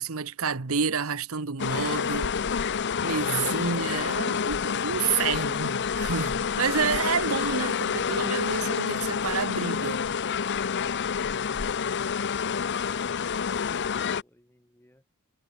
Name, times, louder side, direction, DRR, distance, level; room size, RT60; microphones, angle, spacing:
voice 1, 0.0-2.3 3.0-10.1, right 6 dB, 70° right, 1.0 m, -29 dB
sound 1, 1.6-14.2, left 6 dB, 55° left, 0.6 m, -28 dB
voice 2, 12.8-15.1, left 1 dB, 10° left, 4.8 m, -61 dB
head